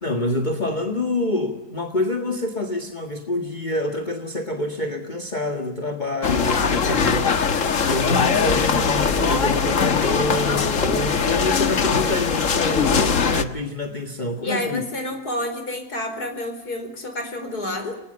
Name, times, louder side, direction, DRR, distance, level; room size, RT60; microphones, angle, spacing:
voice 1, 0.0-14.8, left 1 dB, 30° left, 4 dB, 2.0 m, -27 dB
sound 1, 6.2-13.4, left 5 dB, 55° left, 1.7 m, -21 dB
voice 2, 14.4-17.9, left 1 dB, 80° left, 6 dB, 5.2 m, -29 dB
30.0 x 21.0 x 6.9 m, 0.86 s
omnidirectional pair, 1.6 m